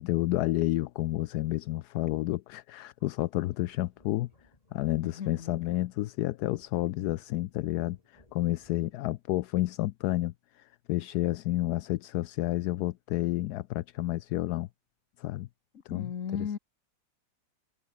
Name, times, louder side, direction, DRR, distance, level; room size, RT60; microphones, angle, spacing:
voice 1, 0.0-4.3 4.7-14.7 15.2-15.5 15.9-16.5, left 16 dB, 70° left, 1.0 m, -30 dB
sound 1, 3.0-9.2, left 1 dB, 20° left, 3.5 m, -64 dB
voice 2, 5.0-5.6 15.9-16.6, left 7 dB, 50° left, 1.6 m, -36 dB
omnidirectional pair, 2.0 m